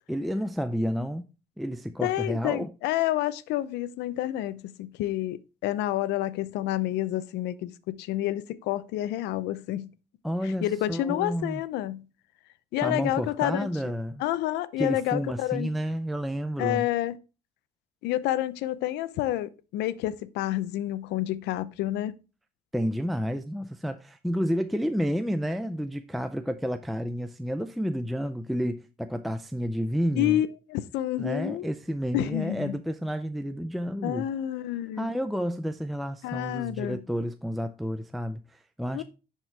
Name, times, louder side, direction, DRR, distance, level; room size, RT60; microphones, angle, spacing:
voice 1, 0.1-1.2 1.6-2.7 10.2-11.6 12.8-14.2 14.8-16.9 22.7-30.4 31.2-34.3 35.0-39.0, equal, ahead, 0.4 m, -30 dB
voice 2, 2.0-9.9 10.4-12.1 12.7-13.7 14.2-15.7 16.6-17.2 18.0-22.2 30.1-31.7 32.1-32.8 34.0-35.1 36.2-37.0 38.9-39.0, left 13 dB, 85° left, 0.6 m, -29 dB
10.5 x 4.5 x 3.3 m
cardioid pair, 110°, 17 cm